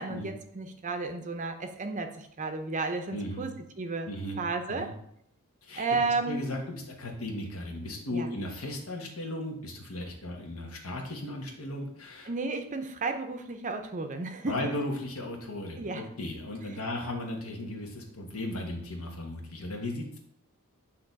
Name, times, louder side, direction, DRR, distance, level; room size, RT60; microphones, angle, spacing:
voice 1, 0.0-4.1 4.4-4.9 5.8-6.4 8.1-8.3 12.3-14.5 15.8-16.1, right 3 dB, 35° right, 6 dB, 0.6 m, -33 dB
voice 2, 3.1-3.5 4.1-4.9 5.6-5.9 6.2-12.3 14.5-20.2, left 1 dB, 75° left, 1 dB, 1.2 m, -36 dB
8.5 x 2.9 x 4.0 m, 0.72 s
head